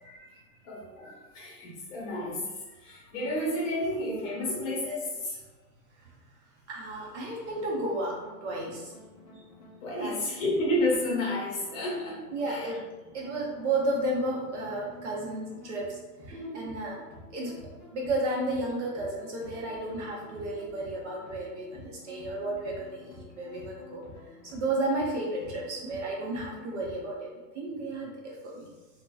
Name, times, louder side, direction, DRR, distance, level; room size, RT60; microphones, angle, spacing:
voice 1, 0.0-5.4 9.8-12.8, left 1 dB, 50° left, -3 dB, 0.9 m, -31 dB
voice 2, 6.7-8.9 10.0-10.3 12.3-12.8 13.1-16.0 16.3-17.0 17.3-17.6 17.9-24.0 24.4-28.7, right 2 dB, 45° right, -3 dB, 0.6 m, -33 dB
sound 1, 7.4-27.1, equal, 30° left, 0.4 m, -50 dB
2.6 x 2.1 x 2.2 m, 1.2 s
hypercardioid pair, 165°, 49 cm